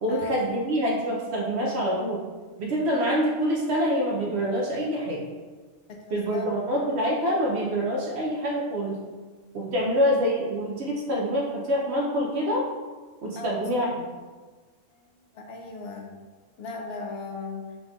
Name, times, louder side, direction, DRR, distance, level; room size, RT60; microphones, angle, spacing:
voice 1, 0.0-2.2 2.6-5.2 6.1-9.0 9.5-12.6 13.2-13.9, equal, 60° right, -2 dB, 0.9 m, -26 dB
voice 2, 6.0-6.4 9.8-9.9 13.4-13.6 14.9-15.0 15.3-16.1 16.6-17.8, left 4 dB, 60° left, 2 dB, 0.8 m, -37 dB
3.8 x 3.7 x 3.4 m, 1.4 s
omnidirectional pair, 1.3 m